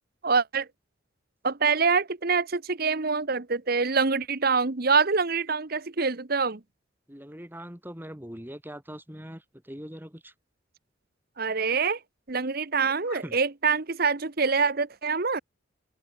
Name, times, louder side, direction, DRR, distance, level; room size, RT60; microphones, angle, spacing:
voice 1, 0.2-0.7 1.4-6.6 11.4-12.0 12.3-15.4, right 5 dB, 50° right, 1.1 m, -25 dB
voice 2, 7.1-10.3 12.7-13.4, equal, 10° right, 5.1 m, -42 dB
open air
head